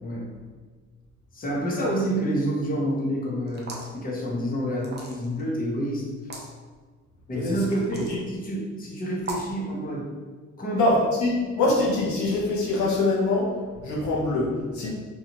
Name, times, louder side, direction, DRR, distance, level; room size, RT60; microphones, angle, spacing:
voice 1, 0.0-0.3 1.3-6.0 7.3-10.1 10.6-10.8 14.8-14.9, right 1 dB, 30° left, -3 dB, 0.8 m, -28 dB
sound 1, 3.5-4.0 4.8-5.4 6.2-6.5 7.7-8.2 9.2-9.6, right 2 dB, 35° right, 0.6 m, -37 dB
voice 2, 10.7-14.9, left 2 dB, 75° left, -4 dB, 0.8 m, -24 dB
2.8 x 2.3 x 2.9 m, 1.4 s
cardioid pair, 90°, 30 cm